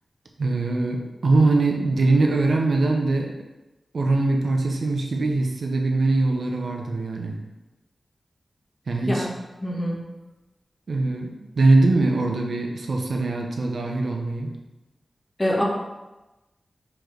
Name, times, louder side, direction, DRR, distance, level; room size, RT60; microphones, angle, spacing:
voice 1, 0.4-3.3 3.9-7.4 8.9-9.3 10.9-14.5, right 2 dB, 80° right, 1 dB, 0.9 m, -22 dB
voice 2, 9.6-10.0 15.4-15.6, left 1 dB, 25° left, -3 dB, 1.7 m, -24 dB
4.8 x 4.5 x 5.0 m, 1.1 s
cardioid pair, 60°, 0 cm